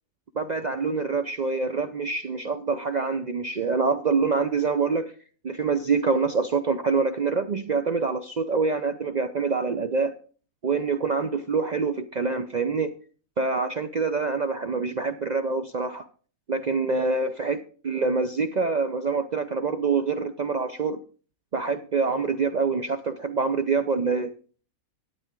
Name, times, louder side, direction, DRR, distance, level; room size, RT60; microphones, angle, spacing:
voice 1, 0.3-5.1 5.4-10.1 10.6-12.9 13.4-16.1 16.5-21.0 21.5-24.3, right 4 dB, 65° right, 0.4 m, -26 dB
12.0 x 9.0 x 3.7 m
omnidirectional pair, 1.5 m